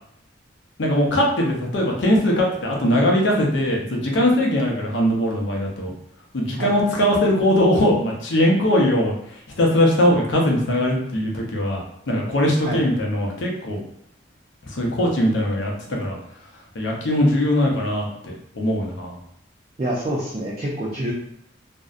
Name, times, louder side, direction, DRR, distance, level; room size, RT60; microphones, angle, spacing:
voice 1, 0.8-5.9 6.3-9.1 9.6-13.8 14.7-16.2 16.7-19.2, left 1 dB, 75° left, -1 dB, 0.6 m, -20 dB
voice 2, 19.8-21.1, right 1 dB, 35° right, -5 dB, 0.4 m, -26 dB
2.6 x 2.1 x 2.4 m, 0.71 s
head